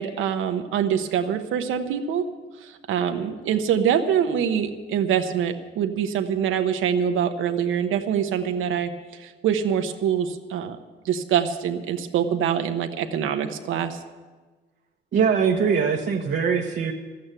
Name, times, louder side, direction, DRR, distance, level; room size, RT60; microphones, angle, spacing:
voice 1, 0.0-2.3 2.6-10.8 11.0-14.0, right 8 dB, 85° right, 6 dB, 1.1 m, -24 dB
voice 2, 15.1-16.9, right 6 dB, 60° right, 0 dB, 1.1 m, -22 dB
13.0 x 8.7 x 8.9 m, 1.3 s
cardioid pair, 90°, 20 cm